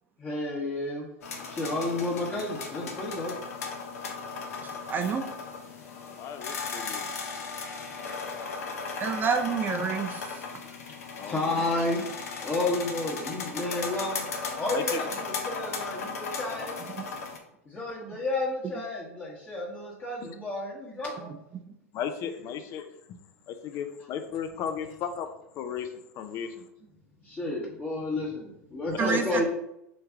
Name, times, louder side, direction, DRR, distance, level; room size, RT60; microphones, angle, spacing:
voice 1, 0.2-3.3 10.7-10.8 11.2-12.0 12.4-14.2 14.6-16.8 17.6-21.3 27.2-29.4, left 2 dB, 20° left, -5 dB, 1.1 m, -31 dB
sound 1, 1.2-17.4, left 4 dB, 70° left, 0.7 m, -36 dB
voice 2, 4.9-5.2 9.0-10.2 29.0-29.4, right 5 dB, 25° right, 5 dB, 0.5 m, -27 dB
voice 3, 6.2-7.1 11.2-11.6 14.7-15.0 20.2-20.3 21.9-23.2 23.5-25.3 25.5-26.6, left 8 dB, 40° left, 7 dB, 0.4 m, -35 dB
3.4 x 3.2 x 3.5 m, 0.81 s
hypercardioid pair, 90°, 8 cm